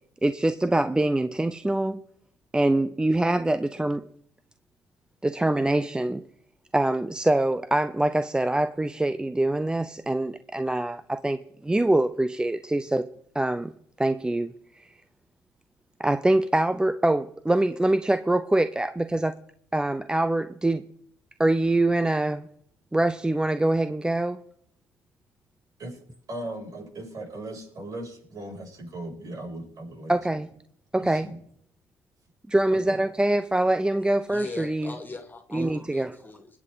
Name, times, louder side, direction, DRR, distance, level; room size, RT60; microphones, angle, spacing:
voice 1, 0.2-2.0 2.5-4.1 5.2-6.3 6.7-13.1 13.3-13.7 14.0-14.9 16.0-19.4 19.7-20.9 21.4-22.5 22.9-24.4 30.1-30.5 30.9-31.3 32.5-34.9 35.5-36.2, right 1 dB, 10° right, 12 dB, 0.6 m, -24 dB
voice 2, 26.3-30.1 31.0-31.4 32.7-33.0, right 1 dB, 55° right, -2 dB, 7.3 m, -38 dB
voice 3, 34.3-36.6, left 3 dB, 25° left, 6 dB, 2.5 m, -41 dB
21.0 x 8.4 x 4.1 m, 0.69 s
supercardioid pair, 65°, 7 cm